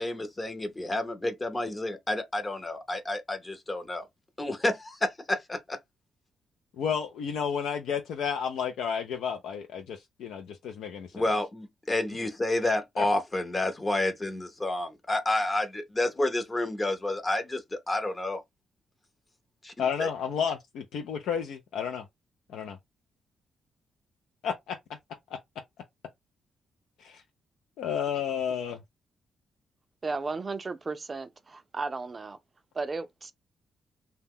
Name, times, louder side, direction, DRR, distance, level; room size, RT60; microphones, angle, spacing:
voice 1, 0.0-4.1 4.4-5.8 11.1-18.4 19.6-20.1, left 1 dB, 20° left, 0.7 m, -30 dB
voice 2, 6.8-11.1 13.0-13.1 19.8-22.1 22.5-22.8 24.4-24.8 27.0-27.2 27.8-28.8, left 7 dB, 90° left, 0.4 m, -31 dB
voice 3, 30.0-32.4 32.7-33.3, right 3 dB, 30° right, 0.4 m, -34 dB
2.8 x 2.1 x 3.5 m
cardioid pair, 100°, 0 cm